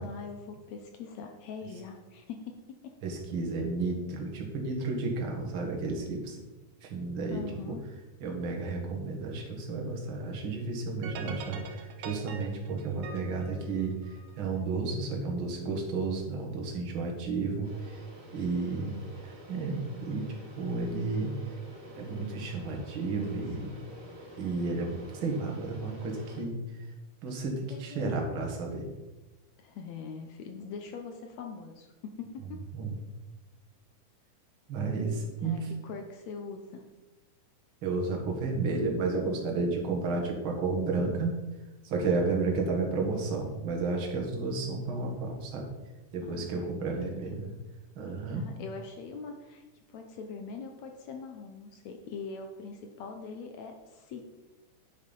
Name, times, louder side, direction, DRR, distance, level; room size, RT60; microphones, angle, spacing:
voice 1, 0.0-3.0 7.2-7.9 23.2-23.5 27.7-28.3 29.6-32.6 35.4-36.8 46.2-47.3 48.3-54.3, left 5 dB, 70° left, 4 dB, 1.9 m, -43 dB
voice 2, 3.0-6.4 6.8-7.4 7.7-7.8 8.2-14.0 14.4-18.0 18.3-18.9 19.2-21.3 22.0-23.7 24.4-26.6 27.2-28.8 32.7-32.9 34.7-35.7 37.8-41.4 41.8-45.7 46.1-47.5 48.0-48.5, right 3 dB, 45° right, 1 dB, 2.2 m, -32 dB
sound 1, 11.0-14.4, right 4 dB, 65° right, 1.7 m, -43 dB
sound 2, 17.6-26.4, equal, 20° right, 2.7 m, -49 dB
10.0 x 6.4 x 5.4 m, 1.1 s
omnidirectional pair, 3.8 m